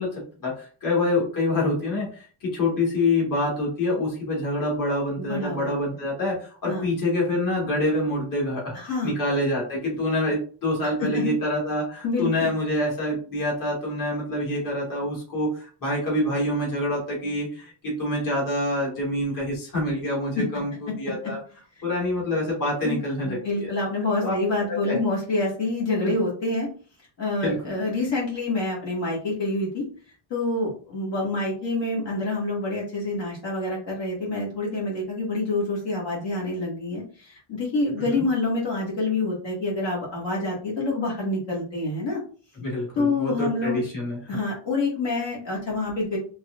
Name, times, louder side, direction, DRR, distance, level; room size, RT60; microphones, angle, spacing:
voice 1, 0.0-21.4 21.8-23.7 24.2-24.4 24.7-25.0 26.0-26.1 27.4-27.6 38.0-38.2 42.6-44.4, left 1 dB, 40° left, -4 dB, 2.0 m, -26 dB
voice 2, 5.2-5.7 6.7-6.9 8.7-9.1 10.8-11.3 12.0-12.5 20.4-20.5 21.2-21.3 22.8-23.0 23.2-26.7 27.2-29.8 30.3-42.2 43.0-43.8 44.3-46.2, left 2 dB, 60° left, -4 dB, 2.0 m, -27 dB
4.5 x 3.3 x 2.5 m, 0.40 s
cardioid pair, 135°, 49 cm